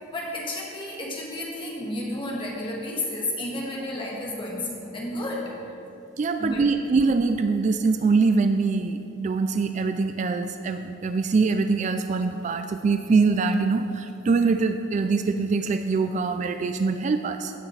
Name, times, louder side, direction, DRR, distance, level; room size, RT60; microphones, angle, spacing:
voice 1, 0.1-5.6 6.4-6.8, left 1 dB, 25° left, -3 dB, 1.6 m, -32 dB
voice 2, 6.2-17.5, right 4 dB, 40° right, 8 dB, 0.3 m, -23 dB
16.0 x 6.4 x 3.3 m, 2.7 s
head